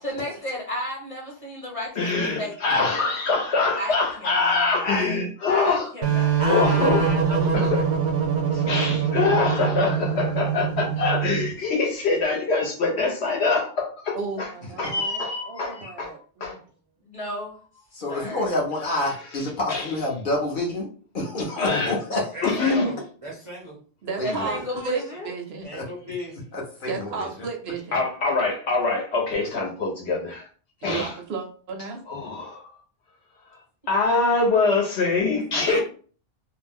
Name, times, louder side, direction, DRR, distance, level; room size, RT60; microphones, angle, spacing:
voice 1, 0.0-2.8 3.8-3.9 4.2-5.2 5.5-6.5 17.0-17.6 18.1-18.4 24.2-25.3 35.5-35.8, left 1 dB, 30° left, 1.0 m, -33 dB
voice 2, 2.0-5.9 6.5-7.0 7.5-7.8 8.5-14.5 14.8-16.1 16.4-16.6 19.0-19.1 19.7-19.9 21.6-22.0 22.4-22.8 27.9-30.5 30.8-31.1 32.1-32.7 33.9-35.8, left 3 dB, 70° left, 1.1 m, -24 dB
sound 1, 6.0-11.5, right 7 dB, 85° right, 1.0 m, -23 dB
voice 3, 6.4-7.8 22.3-23.7 25.6-26.5 35.6-35.8, equal, 40° right, 0.5 m, -34 dB
voice 4, 14.1-16.6 24.0-25.7 26.9-28.0 30.8-32.0, right 5 dB, 70° right, 0.8 m, -33 dB
voice 5, 18.0-20.9 21.1-22.3 24.2-24.5 26.5-27.1 30.9-31.1, left 1 dB, 50° left, 0.8 m, -28 dB
2.6 x 2.1 x 3.4 m
omnidirectional pair, 1.2 m